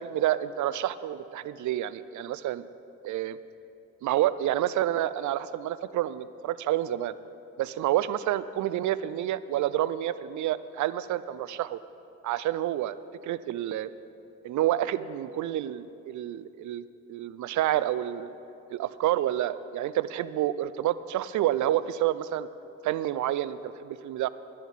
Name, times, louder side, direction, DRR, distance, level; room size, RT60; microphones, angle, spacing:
voice 1, 0.0-2.7 3.0-3.4 4.0-7.1 7.6-11.8 12.2-13.0 13.2-13.9 14.4-16.8 17.1-18.3 18.7-22.5 22.8-24.3, right 13 dB, 65° right, 16 dB, 0.5 m, -29 dB
10.5 x 10.0 x 5.7 m, 2.7 s
hypercardioid pair, 45°, 32 cm